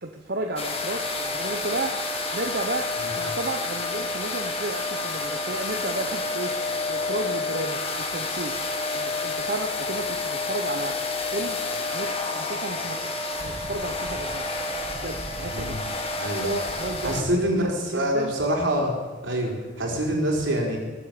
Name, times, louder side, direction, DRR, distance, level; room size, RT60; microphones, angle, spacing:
voice 1, 0.0-1.9 2.3-6.5 6.9-8.6 8.9-11.0 11.3-11.6 11.9-13.1 13.4-14.4 15.0-15.8 16.4-18.3, right 2 dB, 55° right, 3 dB, 1.1 m, -32 dB
sound 1, 0.6-17.2, left 3 dB, 30° left, 1.8 m, -29 dB
voice 2, 17.0-18.9 19.2-20.8, equal, 75° right, -1 dB, 4.2 m, -25 dB
20.5 x 8.6 x 6.9 m, 1.5 s
head